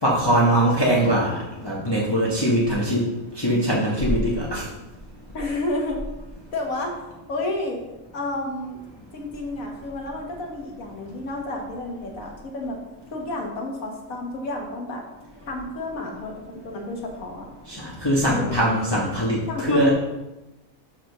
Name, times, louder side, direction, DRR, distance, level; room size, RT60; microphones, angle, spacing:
voice 1, 0.0-3.0 3.4-4.6 17.7-19.9, right 1 dB, 20° left, -6 dB, 1.3 m, -22 dB
voice 2, 5.3-6.0 6.5-7.8 8.1-12.8 13.1-15.0 15.5-17.4 18.3-18.6 19.5-19.9, left 2 dB, 80° left, 1 dB, 1.8 m, -31 dB
5.8 x 5.1 x 6.6 m, 1.0 s
omnidirectional pair, 1.5 m